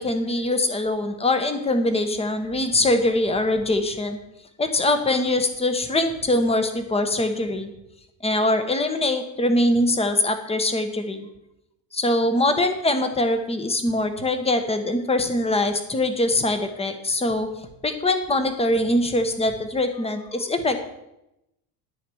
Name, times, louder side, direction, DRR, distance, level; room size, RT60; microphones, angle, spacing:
voice 1, 0.0-4.2 4.6-7.7 8.2-11.3 11.9-17.5 17.8-20.9, left 1 dB, 15° left, 8 dB, 1.3 m, -23 dB
11.0 x 8.6 x 6.3 m, 0.87 s
cardioid pair, 145°, 44 cm